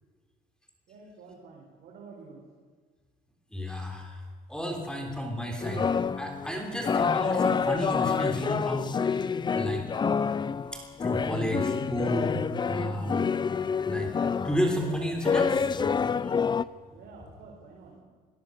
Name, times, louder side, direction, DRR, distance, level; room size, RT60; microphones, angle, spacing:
voice 1, 0.9-2.4 11.1-11.5 16.9-18.0, right 4 dB, 70° right, -2 dB, 4.6 m, -49 dB
voice 2, 3.5-4.2 4.5-5.9 6.2-9.8 10.7-12.4 12.7-13.3 13.9-15.7, equal, 5° left, 3 dB, 3.4 m, -32 dB
sound 1, 5.6-16.6, left 6 dB, 25° left, 0.6 m, -28 dB
22.5 x 17.5 x 6.8 m, 1.5 s
cardioid pair, 110°, 17 cm